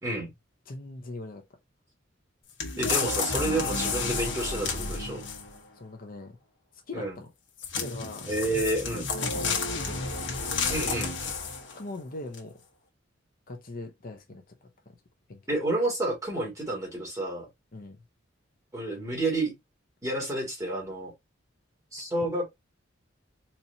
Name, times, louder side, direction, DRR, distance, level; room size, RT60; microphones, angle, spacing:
voice 1, 0.0-0.3 2.8-5.2 6.9-7.1 8.3-9.1 10.7-11.2 15.5-17.5 18.7-19.5 20.0-21.1 21.9-22.5, right 2 dB, 15° right, 2.2 m, -30 dB
voice 2, 0.7-1.4 5.8-6.4 6.9-7.3 7.8-8.3 9.2-10.1 11.7-12.5 13.5-15.0 15.3-15.5 17.7-18.0, left 2 dB, 50° left, 0.8 m, -41 dB
sound 1, 2.6-5.6 7.6-11.8 12.3-12.4, left 4 dB, 65° left, 1.3 m, -31 dB
4.3 x 3.0 x 2.7 m
head